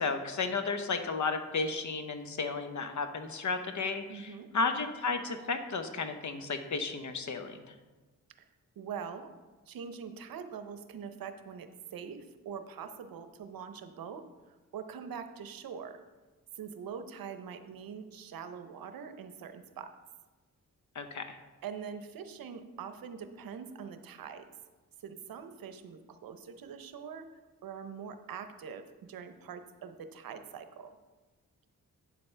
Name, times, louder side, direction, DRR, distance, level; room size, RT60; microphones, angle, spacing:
voice 1, 0.0-7.6 20.9-21.4, left 4 dB, 55° left, 8 dB, 0.9 m, -33 dB
voice 2, 4.1-4.5 8.8-9.3 9.7-14.2 14.7-16.0 16.6-19.9 21.6-24.5 25.0-27.3 27.6-30.9, right 7 dB, 80° right, 9 dB, 0.7 m, -43 dB
8.9 x 7.1 x 3.3 m, 1.2 s
cardioid pair, 55°, 35 cm